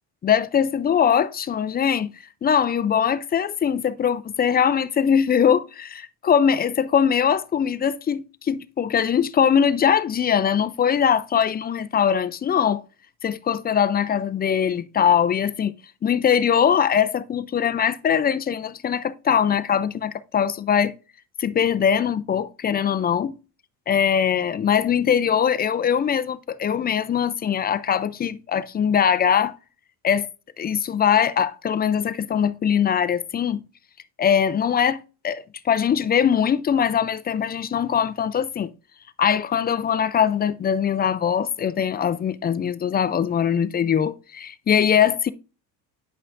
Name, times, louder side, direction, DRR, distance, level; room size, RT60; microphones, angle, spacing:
voice 1, 0.2-2.1 2.4-12.8 13.2-15.7 16.0-20.9 21.4-23.3 23.9-29.5 30.0-30.3 30.6-33.6 34.2-38.7 39.2-45.3, left 8 dB, 25° left, 0.4 m, -21 dB
9.7 x 5.5 x 2.5 m
cardioid pair, 115°, 39 cm